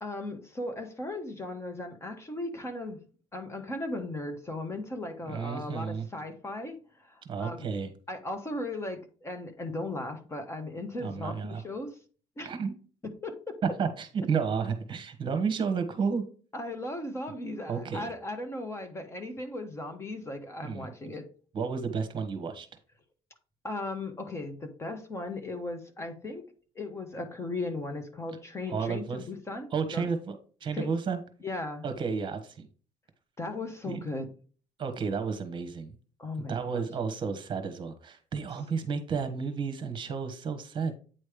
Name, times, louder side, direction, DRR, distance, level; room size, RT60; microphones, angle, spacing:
voice 1, 0.0-3.0 3.3-7.7 8.1-12.0 12.4-12.5 13.0-13.6 16.5-21.3 23.6-26.4 26.7-30.1 30.7-30.9 31.4-31.8 33.4-34.3 36.2-36.9, left 2 dB, 20° left, 7 dB, 1.0 m, -37 dB
voice 2, 5.2-6.1 7.2-7.9 11.0-11.6 12.4-12.7 13.8-16.2 17.7-18.1 20.6-20.9 21.5-22.7 28.7-29.2 29.7-31.2 31.8-32.7 33.9-34.0 34.8-36.0 36.5-40.9, right 5 dB, 40° right, 9 dB, 1.2 m, -32 dB
8.9 x 3.2 x 5.0 m, 0.40 s
cardioid pair, 130°, 13 cm